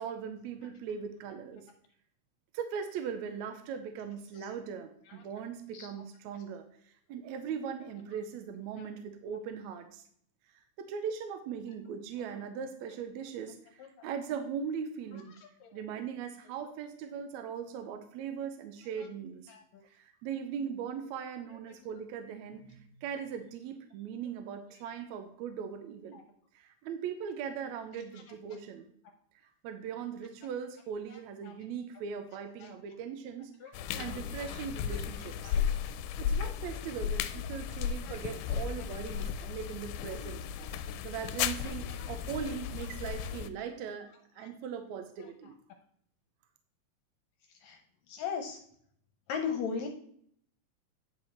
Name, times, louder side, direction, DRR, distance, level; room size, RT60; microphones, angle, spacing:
voice 1, 0.0-1.7 2.5-10.0 10.8-15.3 15.7-19.5 19.9-26.2 26.5-28.9 29.6-35.5 36.2-40.4 41.0-45.6, right 7 dB, 75° right, 7 dB, 1.9 m, -39 dB
sound 1, 33.7-43.5, left 8 dB, 90° left, 2.0 m, -35 dB
voice 2, 48.1-48.6 49.3-49.9, left 6 dB, 75° left, 4 dB, 2.0 m, -36 dB
9.6 x 4.8 x 4.3 m, 0.65 s
omnidirectional pair, 3.5 m